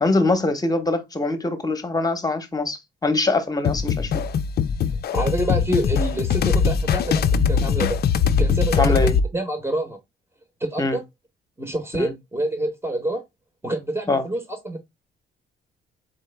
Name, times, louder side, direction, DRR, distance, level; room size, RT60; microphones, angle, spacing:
voice 1, 0.0-4.2 8.8-9.2 10.8-11.0 12.0-12.1 14.1-14.2, left 2 dB, 20° left, 1.0 m, -23 dB
sound 1, 3.7-9.3, left 6 dB, 55° left, 0.5 m, -21 dB
voice 2, 5.1-8.0 8.4-10.0 10.6-11.0 11.6-13.2 13.6-14.8, right 1 dB, 10° right, 1.0 m, -27 dB
4.2 x 3.2 x 3.3 m
cardioid pair, 90°, 20 cm